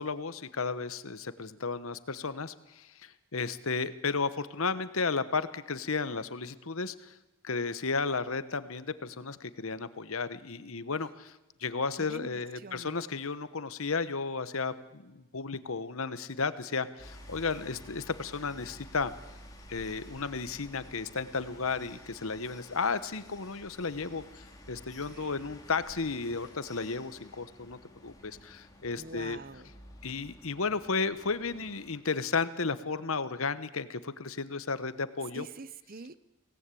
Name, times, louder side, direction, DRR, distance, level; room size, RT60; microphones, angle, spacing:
voice 1, 0.0-7.2 7.4-19.1 19.7-29.4 30.0-35.5, left 4 dB, 70° left, 13 dB, 1.1 m, -33 dB
voice 2, 12.0-12.9 25.1-25.5 28.9-29.7 35.3-36.2, right 3 dB, 40° right, 16 dB, 0.7 m, -45 dB
sound 1, 17.0-32.0, left 1 dB, 15° left, 2.8 m, -52 dB
24.5 x 18.0 x 8.5 m, 1.0 s
head